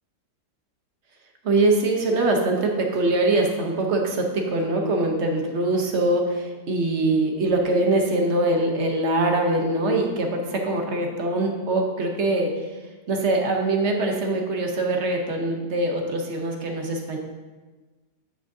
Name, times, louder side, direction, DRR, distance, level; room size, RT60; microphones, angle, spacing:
voice 1, 1.4-12.7 13.1-17.2, right 2 dB, 50° right, 2 dB, 1.0 m, -23 dB
11.0 x 6.0 x 2.7 m, 1.3 s
omnidirectional pair, 1.7 m